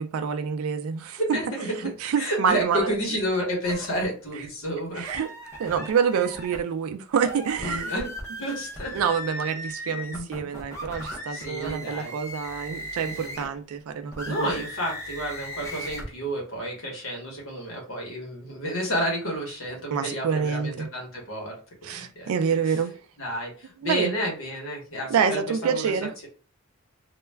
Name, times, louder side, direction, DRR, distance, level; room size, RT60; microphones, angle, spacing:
voice 1, 0.0-1.4 1.8-2.9 5.0-5.3 5.6-7.9 8.9-14.5 19.9-20.9 21.8-23.0 23.8-24.1 25.1-26.1, right 6 dB, 85° right, 0.3 m, -27 dB
voice 2, 1.3-5.2 7.6-8.1 8.4-9.0 9.8-10.5 11.0-12.1 13.0-13.4 14.2-21.5 21.8-22.3 23.2-26.3, equal, 75° left, 0.9 m, -31 dB
sound 1, 3.6-4.1 5.0-6.6 7.2-13.6 14.1-16.1, equal, 15° left, 0.5 m, -37 dB
2.2 x 2.1 x 3.3 m
head